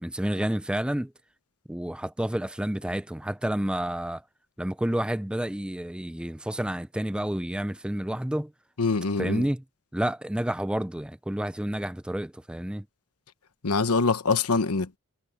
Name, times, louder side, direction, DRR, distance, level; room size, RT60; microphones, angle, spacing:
voice 1, 0.0-1.1 1.7-4.2 4.6-8.5 9.2-9.6 9.9-12.9, right 1 dB, 5° right, 0.4 m, -29 dB
voice 2, 8.8-9.5 13.6-15.0, left 4 dB, 90° left, 1.1 m, -24 dB
head